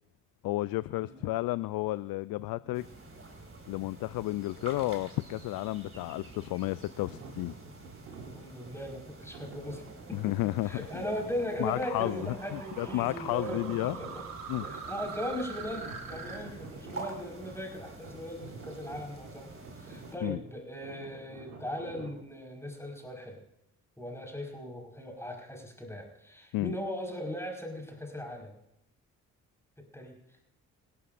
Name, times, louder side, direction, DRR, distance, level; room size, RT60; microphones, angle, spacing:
voice 1, 0.4-2.9 3.7-7.5 10.1-10.8 11.6-12.3 12.5-14.0 14.5-14.7 20.2-20.4 26.5-26.7, left 18 dB, 60° left, 17 dB, 0.5 m, -32 dB
voice 2, 1.0-1.3 2.5-2.8 8.3-9.8 10.1-10.2 10.6-14.2 14.6-19.5 19.8-23.4 24.0-28.6 29.8-30.2, equal, 5° left, 0 dB, 5.1 m, -39 dB
sound 1, 2.7-20.2, right 3 dB, 35° right, 5.2 m, -48 dB
sound 2, 3.0-3.7 4.4-22.3, right 3 dB, 90° right, 3.2 m, -50 dB
sound 3, 8.4-16.4, right 5 dB, 60° right, 4.1 m, -45 dB
28.0 x 12.5 x 2.6 m, 0.85 s
hypercardioid pair, 45°, 38 cm